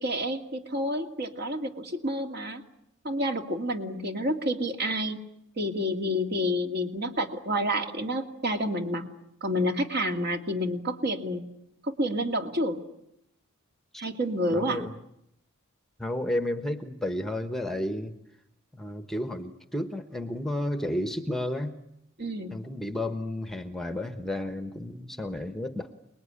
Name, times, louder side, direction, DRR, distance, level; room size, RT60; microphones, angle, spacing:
voice 1, 0.0-2.6 3.0-5.2 5.6-9.0 9.4-11.4 11.8-12.8 14.0-14.8 22.2-22.5, equal, 50° right, 5 dB, 2.5 m, -29 dB
voice 2, 14.5-14.9 16.0-18.1 18.7-21.8 22.5-25.9, left 1 dB, ahead, 9 dB, 1.1 m, -32 dB
28.5 x 20.5 x 9.9 m, 0.81 s
head